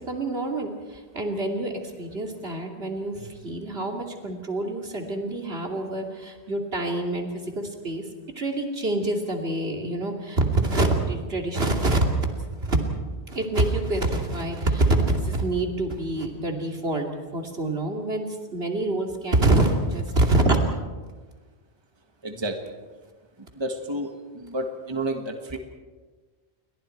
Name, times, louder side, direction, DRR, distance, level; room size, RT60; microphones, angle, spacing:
voice 1, 0.0-8.0 8.4-12.1 12.6-12.8 13.3-17.1 17.3-20.6, right 2 dB, 65° right, 2 dB, 2.9 m, -26 dB
voice 2, 22.2-22.6 23.6-25.6, right 1 dB, 25° right, 4 dB, 1.6 m, -30 dB
29.0 x 23.0 x 4.5 m, 1.4 s
omnidirectional pair, 1.1 m